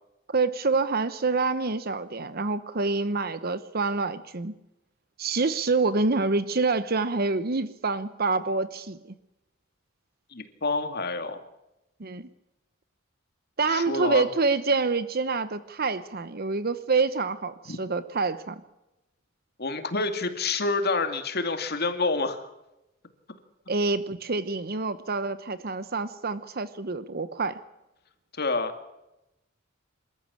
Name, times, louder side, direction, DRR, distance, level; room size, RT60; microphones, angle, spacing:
voice 1, 0.3-4.5 5.2-9.0 12.0-12.3 13.6-18.6 23.7-27.6, right 3 dB, 50° right, 13 dB, 0.9 m, -27 dB
voice 2, 10.3-11.4 13.7-14.3 17.7-17.8 19.6-22.5 28.4-28.8, left 3 dB, 50° left, 7 dB, 2.4 m, -28 dB
27.0 x 14.0 x 8.7 m, 0.93 s
head